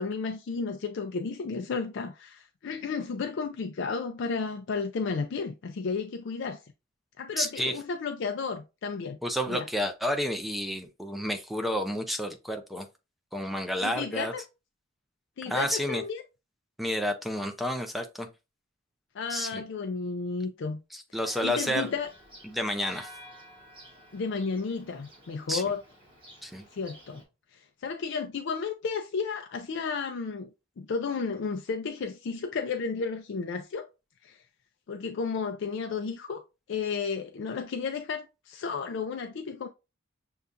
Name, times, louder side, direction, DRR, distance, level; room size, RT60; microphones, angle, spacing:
voice 1, 0.0-6.6 7.2-9.2 9.5-9.7 13.8-14.4 15.4-16.2 19.1-20.8 21.4-22.1 24.1-25.8 26.7-27.2 27.5-30.5 30.8-33.9 34.2-34.4 34.9-36.4 36.7-39.7, left 5 dB, 60° left, 0.4 m, -33 dB
voice 2, 7.4-7.7 9.2-12.9 13.3-14.3 15.5-16.0 16.8-18.3 19.3-19.6 20.9-21.9 22.4-23.1 25.5-25.6 26.4-26.6, equal, ahead, 0.5 m, -30 dB
Church bell, 21.2-27.2, equal, 25° right, 1.6 m, -51 dB
6.7 x 2.3 x 2.5 m
head